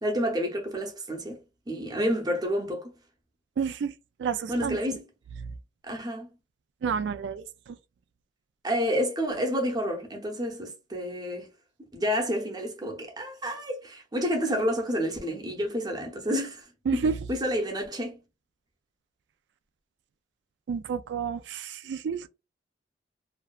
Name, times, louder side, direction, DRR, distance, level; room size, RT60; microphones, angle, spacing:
voice 1, 0.0-1.4 1.7-2.9 4.5-5.0 5.8-6.3 8.6-11.5 11.9-18.2, equal, 25° right, 0.6 m, -29 dB
voice 2, 3.6-4.8 5.4-5.6 6.8-7.8 16.9-17.2 20.7-22.3, right 6 dB, 85° right, 0.3 m, -30 dB
2.5 x 2.2 x 2.3 m
head